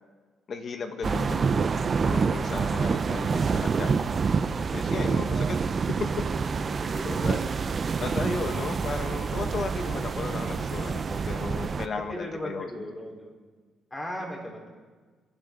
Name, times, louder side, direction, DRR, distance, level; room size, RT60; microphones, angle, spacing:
voice 1, 0.5-1.7 2.0-4.0 4.7-5.7 7.0-7.4 8.0-12.7, left 4 dB, 50° left, 6 dB, 1.8 m, -35 dB
sound 1, 1.0-11.9, right 5 dB, 40° right, 0.7 m, -27 dB
voice 2, 6.8-7.2 7.6-7.7 12.1-13.4 13.9-14.7, equal, 15° left, 0 dB, 4.5 m, -37 dB
29.0 x 11.5 x 4.0 m, 1.4 s
cardioid pair, 90°, 0 cm